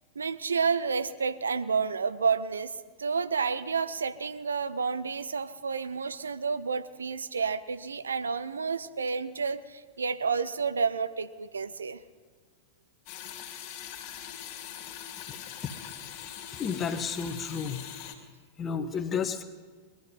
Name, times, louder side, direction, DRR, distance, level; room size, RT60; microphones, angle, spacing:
voice 1, 0.2-12.0, right 5 dB, 75° right, 14 dB, 0.6 m, -30 dB
sound 1, 13.1-18.1, left 10 dB, 45° left, 2.4 m, -42 dB
voice 2, 15.3-15.8 16.6-17.8 18.6-19.4, left 6 dB, 25° left, 10 dB, 1.1 m, -32 dB
21.0 x 11.5 x 5.5 m, 1.5 s
figure-of-eight pair, 90°, 0 cm